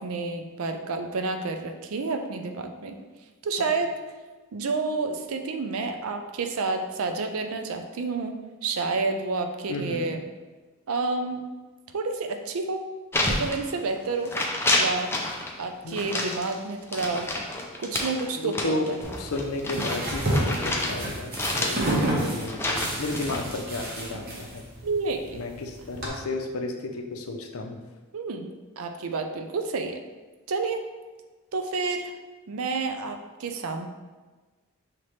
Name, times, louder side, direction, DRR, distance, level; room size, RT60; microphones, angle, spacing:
voice 1, 0.0-3.0 3.4-3.9 4.5-10.2 10.9-11.4 11.9-12.8 13.3-14.3 14.7-15.1 15.6-17.3 17.8-19.1 21.6-22.0 24.8-25.4 28.1-30.0 30.5-30.8 31.5-32.1 32.5-33.9, right 3 dB, 70° right, 6 dB, 0.5 m, -29 dB
voice 2, 9.7-10.1 15.8-16.5 18.4-18.9 19.2-21.9 22.2-24.6 25.3-27.8, left 2 dB, 75° left, 4 dB, 0.6 m, -33 dB
sound 1, 13.1-14.0 14.2-15.5 15.9-21.0 21.3-23.4, left 2 dB, 10° left, 0.4 m, -29 dB
sound 2, 19.0-26.1, right 1 dB, 40° right, 1.0 m, -30 dB
5.7 x 2.9 x 3.2 m, 1.3 s
head